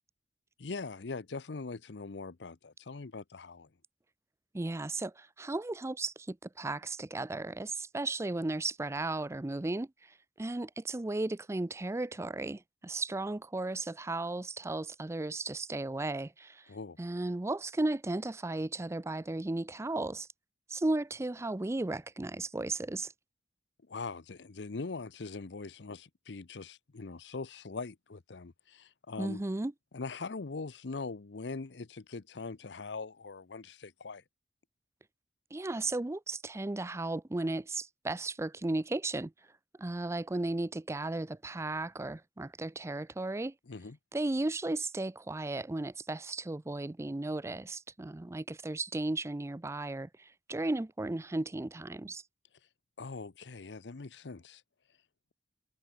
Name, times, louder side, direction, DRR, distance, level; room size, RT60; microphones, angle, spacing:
voice 1, 0.6-3.7 16.7-17.0 23.9-29.4 29.9-34.2 43.7-44.0 53.0-54.6, left 4 dB, 70° left, 0.8 m, -42 dB
voice 2, 4.5-9.9 10.4-16.7 17.0-20.3 20.7-23.1 29.2-29.7 35.5-39.3 39.8-43.5 44.1-52.2, right 2 dB, 15° right, 0.4 m, -35 dB
head